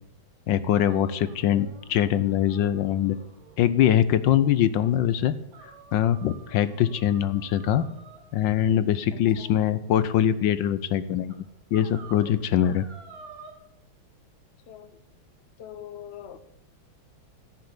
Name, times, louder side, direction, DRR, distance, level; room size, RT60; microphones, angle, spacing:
voice 1, 0.5-3.2 3.6-5.3 5.9-7.9 8.3-11.4 11.7-12.9, left 10 dB, 70° left, 14 dB, 1.3 m, -23 dB
sound 1, 0.8-3.8 4.2-4.3 4.8-4.9 5.5-8.3 9.2-9.8 10.6-10.7 11.3-11.4 11.7-13.5, right 4 dB, 65° right, 3.3 m, -50 dB
voice 2, 9.1-9.5 14.7-15.0 15.6-16.4, left 10 dB, 45° left, 11 dB, 0.8 m, -43 dB
14.5 x 6.7 x 9.8 m, 0.83 s
omnidirectional pair, 2.2 m